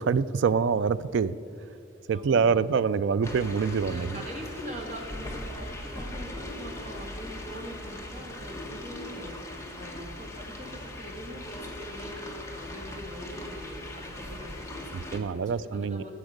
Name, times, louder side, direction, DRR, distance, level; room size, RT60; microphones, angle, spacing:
voice 1, 0.0-1.4 2.1-4.2 14.9-16.0, right 6 dB, 65° right, 16 dB, 0.3 m, -25 dB
voice 2, 2.1-2.6 3.8-9.4 9.7-16.1, equal, 35° right, 0 dB, 1.9 m, -42 dB
sound 1, 3.2-15.2, left 1 dB, 15° left, 1.1 m, -40 dB
14.0 x 6.2 x 6.5 m, 2.8 s
head